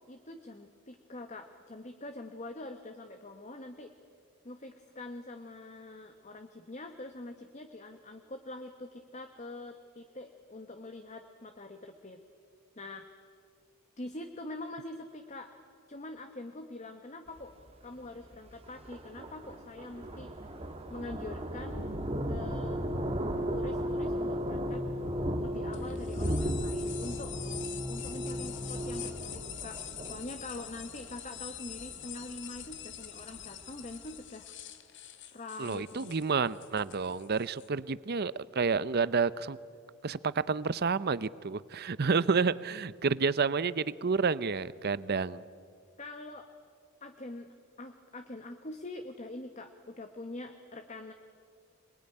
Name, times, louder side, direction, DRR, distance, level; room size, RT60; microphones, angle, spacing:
voice 1, 0.1-3.9 4.4-12.2 12.8-13.2 14.0-15.5 15.9-17.5 17.8-20.3 20.9-21.9 22.2-22.8 23.5-24.8 25.4-27.4 27.9-34.5 35.3-36.2 46.0-46.5 47.0-47.5 47.8-51.1, left 2 dB, 30° left, 6 dB, 1.1 m, -44 dB
Thunder, 17.3-34.2, right 1 dB, 25° right, 1.7 m, -38 dB
sound 1, 22.0-29.1, left 1 dB, 5° right, 2.8 m, -36 dB
sound 2, 25.7-37.7, left 11 dB, 55° left, 1.4 m, -45 dB
voice 2, 35.6-39.6 40.0-45.4, right 5 dB, 45° right, 18 dB, 0.6 m, -30 dB
26.5 x 20.5 x 9.9 m, 2.2 s
head